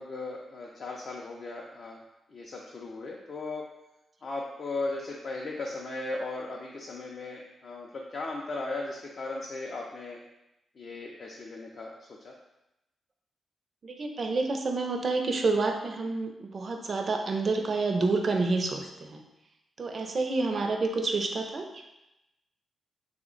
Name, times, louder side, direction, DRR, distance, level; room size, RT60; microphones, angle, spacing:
voice 1, 0.0-2.0 2.3-3.6 4.2-10.2 10.8-12.3, left 2 dB, 50° left, -2 dB, 0.4 m, -37 dB
voice 2, 13.8-19.2 19.8-21.9, right 3 dB, 45° right, 4 dB, 0.4 m, -29 dB
3.1 x 2.1 x 3.7 m, 0.91 s
cardioid pair, 115°, 0 cm